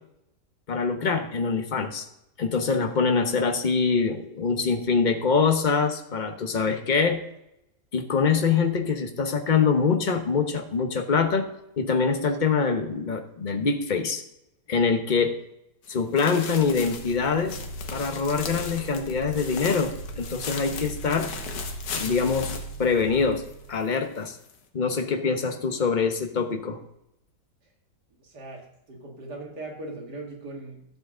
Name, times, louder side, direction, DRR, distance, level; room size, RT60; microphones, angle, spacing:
voice 1, 0.7-2.1 2.4-7.2 7.9-11.5 11.8-14.2 14.7-15.3 15.9-17.6 17.9-21.3 21.9-23.4 23.7-24.4 24.7-26.8, left 5 dB, 35° left, 5 dB, 1.0 m, -24 dB
sound 1, 15.8-23.5 23.9-24.0 24.5-24.6, left 6 dB, 70° left, 1.6 m, -37 dB
sound 2, 16.4-24.0, right 2 dB, 90° right, 2.0 m, -39 dB
voice 2, 28.2-30.8, right 2 dB, 75° right, 0 dB, 2.7 m, -39 dB
13.5 x 7.9 x 3.8 m, 0.81 s
omnidirectional pair, 1.8 m